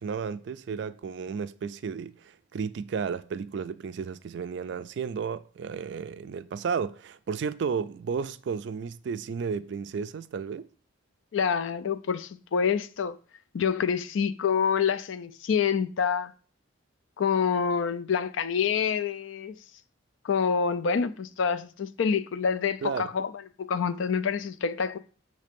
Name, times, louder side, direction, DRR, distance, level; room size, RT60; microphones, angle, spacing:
voice 1, 0.0-10.7 22.8-23.1, right 6 dB, 55° right, 0.3 m, -33 dB
voice 2, 11.3-13.2 13.5-16.3 17.2-19.5 20.2-23.3 23.6-25.0, left 6 dB, 65° left, 0.4 m, -27 dB
6.5 x 3.3 x 5.1 m
head